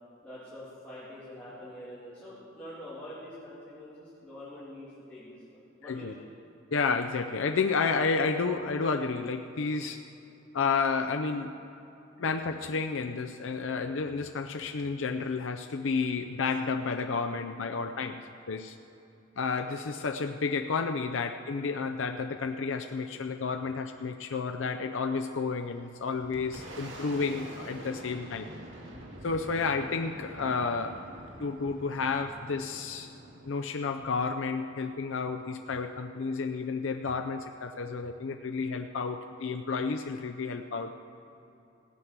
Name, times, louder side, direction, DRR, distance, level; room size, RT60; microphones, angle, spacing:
voice 1, 0.2-5.4 5.8-6.3, left 1 dB, 5° left, -11 dB, 3.0 m, -45 dB
voice 2, 5.8-6.1 6.7-10.1 10.5-11.5 12.2-18.8 19.4-28.5 29.2-31.0 31.4-33.1 33.4-40.9, left 4 dB, 70° left, 5 dB, 0.5 m, -31 dB
Boom, 25.7-35.1, right 1 dB, 70° right, 1.9 m, -46 dB
17.0 x 8.0 x 6.0 m, 2.8 s
head